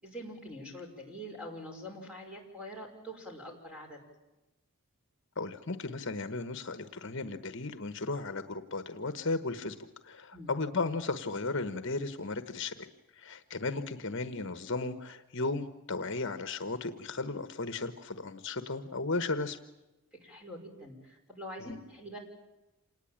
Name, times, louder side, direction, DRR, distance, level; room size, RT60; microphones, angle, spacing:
voice 1, 0.0-4.0 10.3-10.5 20.2-22.2, equal, 5° right, 1 dB, 5.7 m, -44 dB
voice 2, 5.4-9.8 10.0-12.9 13.1-19.6 21.6-21.8, left 3 dB, 55° left, 10 dB, 1.2 m, -35 dB
27.5 x 19.5 x 8.8 m, 1.0 s
head